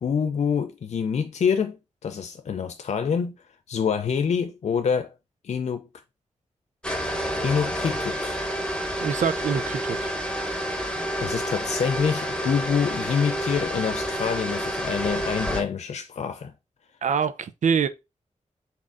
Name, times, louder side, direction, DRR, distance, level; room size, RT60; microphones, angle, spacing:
voice 1, 0.0-1.8 2.0-3.3 3.7-5.1 5.4-5.9 7.4-8.4 10.8-16.5, left 6 dB, 65° left, 0.4 m, -26 dB
sound 1, 6.8-15.6, equal, 5° left, 0.9 m, -29 dB
voice 2, 9.0-10.1 17.0-17.9, right 6 dB, 80° right, 0.5 m, -25 dB
4.2 x 3.5 x 2.5 m
wide cardioid pair, 105°, 13 cm